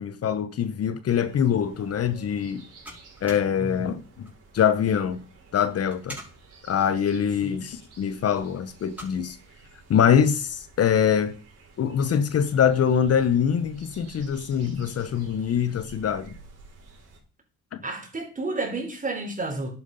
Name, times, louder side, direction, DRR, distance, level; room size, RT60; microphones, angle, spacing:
voice 1, 0.0-2.6 3.2-5.2 5.5-6.2 6.7-9.4 9.9-11.3 11.8-16.3 17.7-17.8, left 8 dB, 55° left, 0.9 m, -24 dB
sound 1, 1.1-17.2, right 3 dB, 55° right, 4.5 m, -51 dB
sound 2, 2.4-10.8, right 1 dB, 5° right, 5.1 m, -49 dB
voice 2, 3.5-3.9 7.4-7.5 17.8-19.7, right 2 dB, 25° right, 4.3 m, -31 dB
10.5 x 9.3 x 5.4 m
cardioid pair, 90°, 30 cm